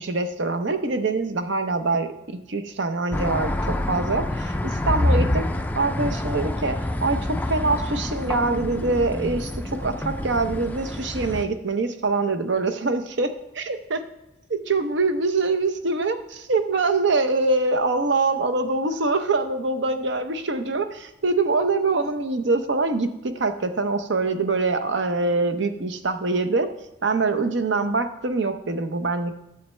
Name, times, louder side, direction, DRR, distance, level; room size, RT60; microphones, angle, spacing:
voice 1, 0.0-5.4 5.7-14.0 14.5-26.7 27.0-29.4, right 3 dB, 65° right, 9 dB, 0.7 m, -24 dB
sound 1, 3.1-11.4, left 1 dB, 10° left, 0.3 m, -27 dB
9.3 x 7.2 x 3.2 m, 0.92 s
head